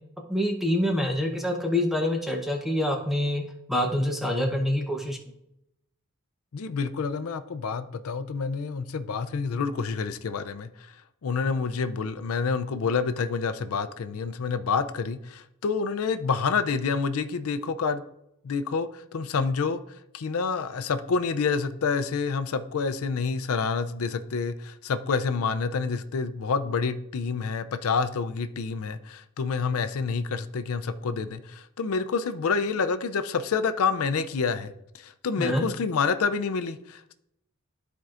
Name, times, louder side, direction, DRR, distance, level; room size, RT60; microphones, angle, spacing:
voice 1, 0.3-3.4 3.7-5.2 35.4-35.6, left 1 dB, ahead, 2 dB, 0.8 m, -26 dB
voice 2, 6.5-10.9 11.2-18.0 18.4-19.8 20.1-37.2, left 5 dB, 85° left, 10 dB, 0.4 m, -28 dB
13.0 x 4.5 x 2.5 m, 0.81 s
head